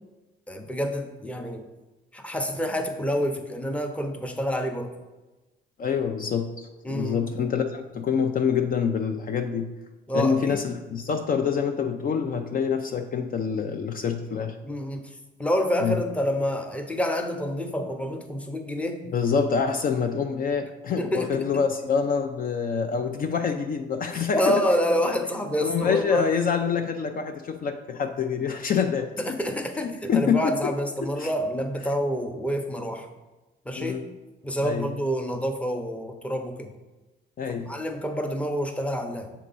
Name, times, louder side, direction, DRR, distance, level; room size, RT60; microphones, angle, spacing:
voice 1, 0.5-1.7 2.1-4.9 6.8-7.3 10.1-10.6 14.6-15.0 15.4-19.0 21.0-21.6 24.3-26.3 29.2-33.1 33.7-34.0 34.4-36.7 37.7-39.3, equal, 5° left, 5 dB, 0.6 m, -28 dB
voice 2, 5.8-9.7 10.1-14.6 15.8-16.0 19.1-24.6 25.6-29.4 29.8-30.7 31.0-31.3 33.8-34.1 34.6-34.9 37.4-37.7, left 6 dB, 45° left, 5 dB, 0.4 m, -26 dB
6.5 x 3.7 x 4.0 m, 1.1 s
cardioid pair, 90°, 20 cm